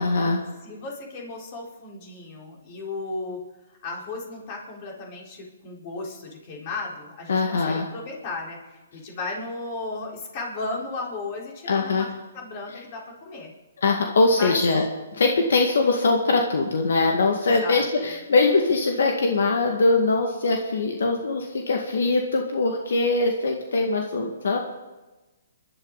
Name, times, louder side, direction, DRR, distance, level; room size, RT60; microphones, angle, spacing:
voice 1, 0.0-0.5 7.3-7.9 11.7-12.1 13.8-14.8 15.1-24.6, left 3 dB, 75° left, 2 dB, 2.0 m, -22 dB
voice 2, 0.6-3.4 3.8-13.5 14.4-14.6 17.6-18.1, left 3 dB, 35° left, -2 dB, 4.6 m, -35 dB
28.5 x 12.0 x 4.2 m, 1.1 s
hypercardioid pair, 155°, 0 cm